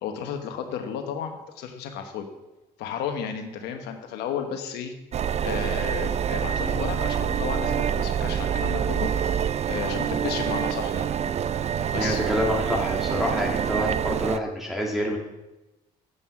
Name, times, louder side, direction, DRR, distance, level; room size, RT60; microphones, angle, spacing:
voice 1, 0.0-2.2 2.8-4.9 5.4-11.1 11.9-12.2, left 7 dB, 85° left, 5 dB, 1.2 m, -33 dB
sound 1, 5.1-14.4, right 8 dB, 40° right, 0.4 m, -26 dB
voice 2, 11.9-15.2, equal, ahead, -3 dB, 1.9 m, -27 dB
8.1 x 5.4 x 5.9 m, 1.0 s
supercardioid pair, 70°, 17 cm